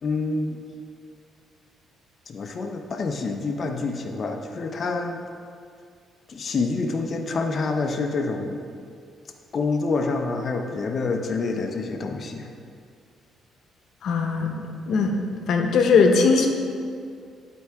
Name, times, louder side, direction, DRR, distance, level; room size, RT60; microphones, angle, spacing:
voice 1, 0.0-0.6 2.3-5.2 6.3-8.7 9.5-12.5, left 3 dB, 40° left, 4 dB, 0.5 m, -27 dB
voice 2, 14.0-14.6 14.9-15.2 15.5-16.5, left 5 dB, 65° left, 3 dB, 0.8 m, -19 dB
11.0 x 4.6 x 3.4 m, 2.3 s
cardioid pair, 140°, 0 cm